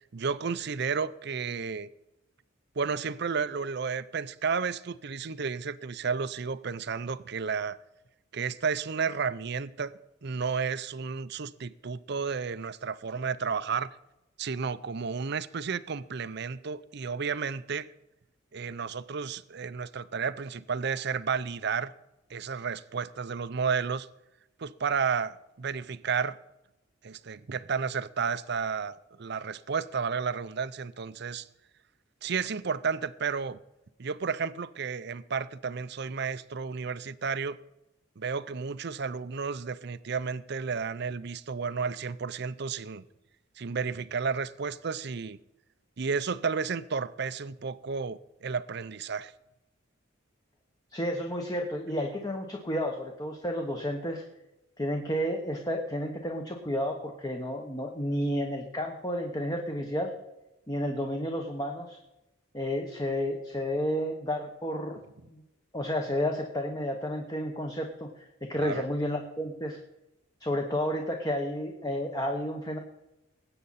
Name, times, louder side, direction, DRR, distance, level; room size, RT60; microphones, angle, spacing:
voice 1, 0.0-1.9 2.8-7.8 8.3-13.9 14.4-17.9 18.5-21.9 22.3-24.1 24.6-26.4 27.0-31.5 32.2-33.6 34.0-37.6 38.2-43.0 43.6-45.4 46.0-49.3 68.6-68.8, right 5 dB, 55° right, 0.6 m, -32 dB
voice 2, 50.9-54.2 54.8-60.1 60.7-62.0 62.5-65.0 65.3-65.4 65.7-68.1 68.4-69.8 70.4-72.8, equal, 20° left, 1.1 m, -31 dB
20.0 x 8.6 x 4.2 m
head